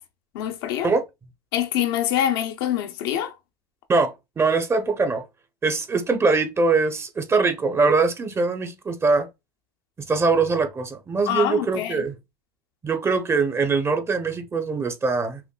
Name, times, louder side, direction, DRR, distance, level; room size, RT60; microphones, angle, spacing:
voice 1, 0.3-0.9 1.5-3.3 11.3-12.1, left 10 dB, 75° left, 0.7 m, -25 dB
voice 2, 3.9-5.2 5.6-9.3 10.1-12.2 12.8-15.4, right 4 dB, 20° right, 0.7 m, -22 dB
5.7 x 2.1 x 2.2 m
supercardioid pair, 100°, 12 cm